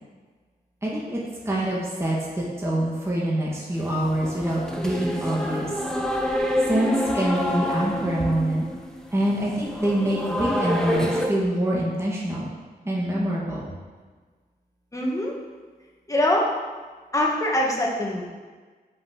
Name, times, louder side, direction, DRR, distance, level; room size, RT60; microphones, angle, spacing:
voice 1, 0.8-5.7 6.7-8.7 9.1-12.5 12.8-13.7, right 1 dB, 15° right, -5 dB, 1.9 m, -25 dB
sound 1, 3.7-11.3, left 1 dB, 5° left, 1.0 m, -27 dB
voice 2, 14.9-15.3 16.1-16.5 17.1-18.2, left 1 dB, 20° left, -2 dB, 1.9 m, -23 dB
9.8 x 5.6 x 6.6 m, 1.4 s
wide cardioid pair, 150°, 16 cm